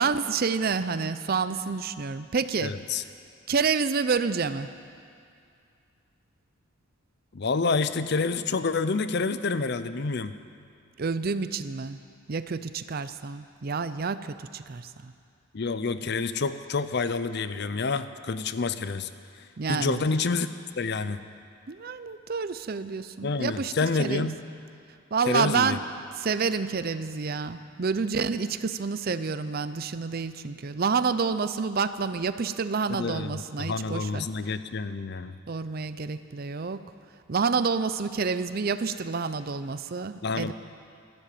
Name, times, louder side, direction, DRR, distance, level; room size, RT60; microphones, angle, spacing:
voice 1, 0.0-2.7 3.5-4.7 11.0-12.0 12.3-14.3 14.5-15.1 19.6-20.0 21.7-23.7 24.0-24.3 25.1-25.8 26.2-34.3 35.5-36.8 37.3-40.5, right 5 dB, 45° right, 13 dB, 0.5 m, -28 dB
voice 2, 2.6-3.0 7.3-10.3 15.5-19.1 19.7-20.5 20.8-21.2 23.2-24.4 25.3-25.8 32.9-35.3 40.2-40.5, left 4 dB, 50° left, 12 dB, 0.6 m, -28 dB
13.5 x 12.5 x 8.5 m, 2.4 s
head